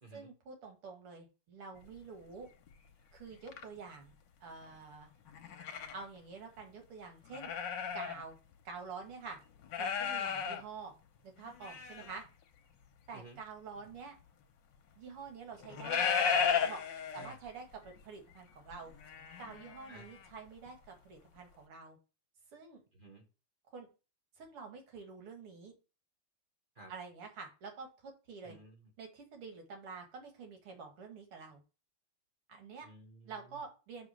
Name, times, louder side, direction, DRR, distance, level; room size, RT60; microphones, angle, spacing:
voice 1, 0.1-2.5 3.1-4.1 4.4-5.1 5.9-7.5 7.9-8.4 8.6-9.4 9.8-10.9 11.2-12.2 13.1-14.2 15.0-16.1 16.6-16.8 17.1-18.9 19.4-22.0 22.5-22.8 23.7-23.9 24.4-25.7 26.9-28.6 29.0-31.6 32.5-32.9 33.2-34.1, right 5 dB, 80° right, 3 dB, 2.6 m, -48 dB
sound 1, 1.8-2.0 2.7-2.8 3.3-3.6 5.3-6.0 6.6-6.7 7.3-8.2 8.5-8.6 9.6-10.6 11.4-12.2 13.8-13.9 15.5-17.5 17.8-18.0 18.3-20.3 20.7-20.8, left 6 dB, 60° left, 1.4 m, -35 dB
voice 2, 22.9-23.2 26.7-26.9 28.4-28.9 32.8-33.6, right 2 dB, 30° right, 1 dB, 1.2 m, -54 dB
7.2 x 3.8 x 6.3 m, 0.32 s
omnidirectional pair, 2.4 m